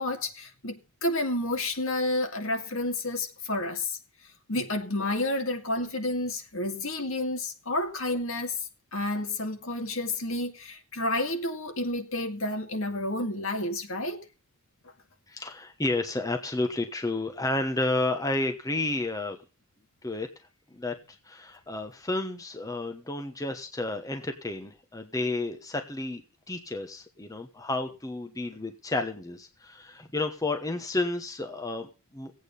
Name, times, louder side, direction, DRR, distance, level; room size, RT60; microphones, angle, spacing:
voice 1, 0.0-4.0 4.5-8.6 8.9-14.2, left 2 dB, 65° left, 2.2 m, -30 dB
voice 2, 15.3-19.4 20.0-20.3 20.7-26.2 26.5-32.3, left 2 dB, 15° left, 1.1 m, -31 dB
17.0 x 8.6 x 5.4 m
head